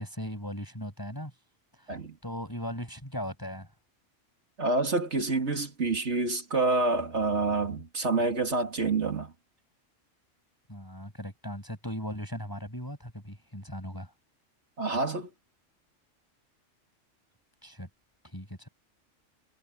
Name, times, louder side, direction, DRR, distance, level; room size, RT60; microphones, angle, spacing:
voice 1, 0.0-1.3 1.8-3.7 10.7-14.1 17.6-17.9 18.2-18.7, equal, 15° left, 6.5 m, -38 dB
voice 2, 4.6-9.3 14.8-15.3, right 3 dB, 60° right, 2.9 m, -27 dB
omnidirectional pair, 1.3 m